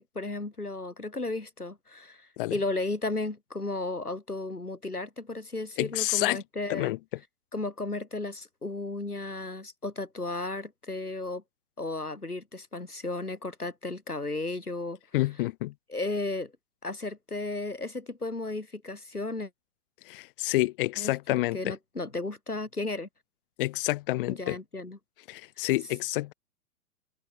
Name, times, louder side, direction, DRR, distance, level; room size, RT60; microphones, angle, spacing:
voice 1, 0.0-6.9 7.5-11.4 11.8-15.0 15.9-16.5 16.8-19.5 21.0-23.1 24.3-25.0, left 2 dB, 85° left, 5.7 m, -34 dB
voice 2, 5.8-6.4 6.7-7.0 15.1-15.7 20.1-21.8 23.6-24.6 25.3-26.3, left 18 dB, 35° left, 1.9 m, -28 dB
figure-of-eight pair, 115°, 44 cm